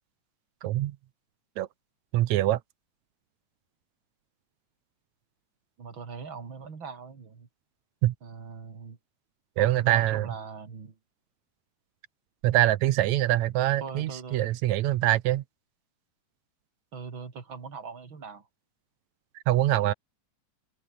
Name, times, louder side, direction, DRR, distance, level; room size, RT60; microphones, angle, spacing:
voice 1, 0.6-1.0 1.6-1.7 2.1-2.6 8.0-8.1 9.6-10.3 12.4-15.4 19.5-19.9, right 14 dB, 75° right, 2.2 m, -24 dB
voice 2, 5.8-7.5 8.2-9.0 9.6-11.0 13.8-14.5 16.9-18.5, right 5 dB, 40° right, 3.5 m, -41 dB
omnidirectional pair, 3.4 m